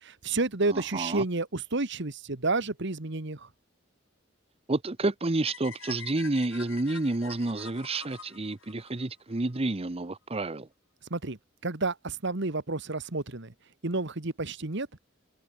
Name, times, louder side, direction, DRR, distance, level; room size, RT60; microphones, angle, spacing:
voice 1, 0.0-3.5 11.1-11.4 11.6-13.5 13.8-14.9, right 3 dB, 65° right, 1.7 m, -30 dB
voice 2, 0.7-1.2 4.7-10.7, right 2 dB, 30° right, 0.9 m, -30 dB
sound 1, 5.4-9.6, left 6 dB, 80° left, 6.0 m, -46 dB
head